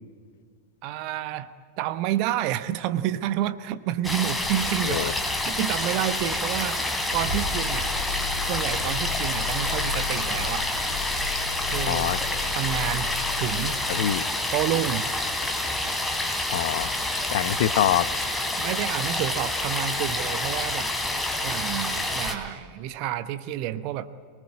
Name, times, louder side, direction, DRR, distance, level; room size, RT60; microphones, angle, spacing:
voice 1, 0.8-1.5 1.8-7.9 8.4-10.7 11.7-12.2 12.5-14.0 14.5-15.1 18.6-20.9 21.4-24.1, right 12 dB, 45° right, 13 dB, 0.9 m, -29 dB
sound 1, 4.0-22.3, left 1 dB, 5° left, 3.2 m, -28 dB
sound 2, 7.1-13.8, left 5 dB, 80° left, 2.9 m, -34 dB
voice 2, 11.9-12.2 13.9-14.2 16.5-16.9 17.3-18.1, left 12 dB, 55° left, 17 dB, 0.8 m, -25 dB
24.5 x 20.0 x 9.7 m, 2.1 s
figure-of-eight pair, 90°, 0 cm